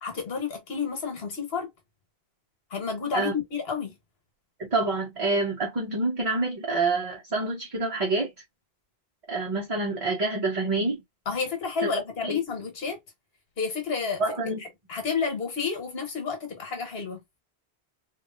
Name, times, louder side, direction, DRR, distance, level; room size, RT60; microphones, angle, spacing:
voice 1, 0.0-1.7 2.7-4.0 11.3-13.0 13.6-14.2 14.9-17.2, left 5 dB, 70° left, 1.3 m, -30 dB
voice 2, 4.7-8.3 9.3-11.0 11.8-11.9 12.2-12.4 14.2-14.6, right 3 dB, 40° right, 0.7 m, -27 dB
3.1 x 2.4 x 2.4 m
omnidirectional pair, 1.1 m